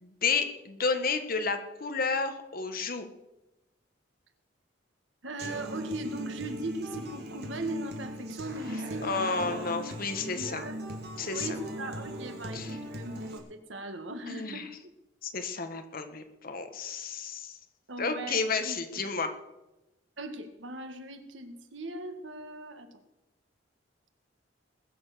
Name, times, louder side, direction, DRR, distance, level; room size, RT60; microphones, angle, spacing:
voice 1, 0.0-3.1 9.0-10.7 11.2-11.6 12.5-12.7 14.3-14.7 15.2-17.6 18.0-19.3, left 4 dB, 50° left, 7 dB, 1.5 m, -31 dB
voice 2, 5.2-9.9 10.3-10.8 11.3-14.9 17.9-18.8 20.2-22.9, right 2 dB, 80° right, 7 dB, 1.7 m, -39 dB
Human voice / Acoustic guitar, 5.4-13.4, equal, 60° right, 2.5 m, -39 dB
20.5 x 7.1 x 6.9 m, 0.96 s
head